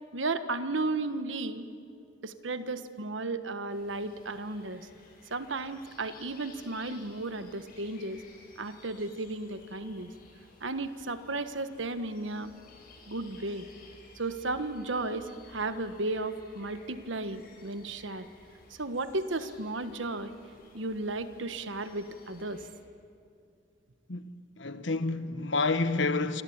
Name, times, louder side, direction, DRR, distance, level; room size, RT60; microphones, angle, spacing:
voice 1, 0.1-1.6 2.2-4.9 5.3-8.2 8.6-10.1 10.6-12.5 13.1-13.7 14.1-18.3 18.8-20.3 20.7-22.6, right 2 dB, 85° right, 1.4 m, -34 dB
sound 1, 3.7-22.7, left 3 dB, 50° left, 6.3 m, -56 dB
voice 2, 24.6-26.4, left 3 dB, 75° left, 1.2 m, -28 dB
26.5 x 25.5 x 8.8 m
head